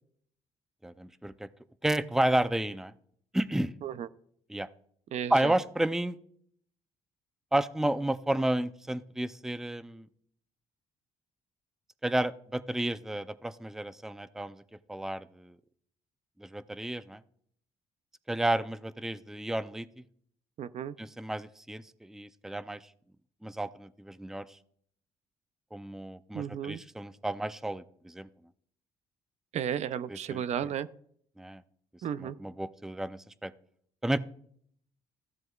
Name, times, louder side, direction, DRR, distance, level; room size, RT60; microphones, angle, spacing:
voice 1, 0.8-1.5 1.8-2.9 3.3-3.7 4.5-4.7 5.3-6.1 7.5-10.1 12.0-14.6 14.9-15.6 16.4-17.2 18.3-19.9 21.0-22.8 23.4-24.4 25.7-28.3 30.3-30.4 31.4-31.6 32.2-33.5 34.0-34.2, right 1 dB, 5° right, 14 dB, 0.5 m, -31 dB
voice 2, 5.1-5.5 20.6-20.9 26.3-26.8 29.5-30.9 32.0-32.4, right 9 dB, 65° right, 14 dB, 0.5 m, -33 dB
14.5 x 7.7 x 2.3 m, 0.62 s
cardioid pair, 80°, 13 cm